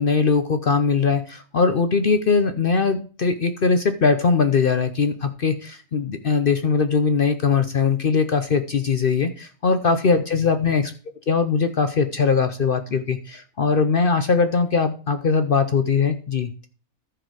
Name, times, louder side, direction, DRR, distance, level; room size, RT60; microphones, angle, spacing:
voice 1, 0.0-10.9 11.3-16.7, left 5 dB, 50° left, 9 dB, 0.8 m, -21 dB
14.0 x 4.9 x 4.6 m, 0.38 s
omnidirectional pair, 1.4 m